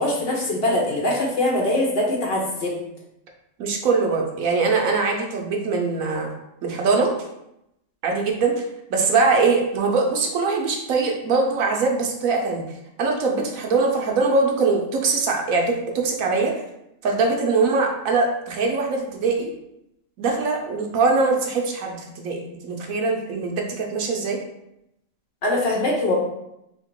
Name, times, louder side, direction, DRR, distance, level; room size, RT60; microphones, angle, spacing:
voice 1, 0.0-2.7 25.4-26.1, left 1 dB, 50° left, -2 dB, 0.9 m, -22 dB
voice 2, 3.6-6.3 6.6-7.3 8.0-8.6 8.9-12.6 13.0-16.5 17.0-19.5 20.2-24.4, right 4 dB, 75° right, 1 dB, 1.1 m, -22 dB
2.9 x 2.8 x 4.4 m, 0.83 s
omnidirectional pair, 1.4 m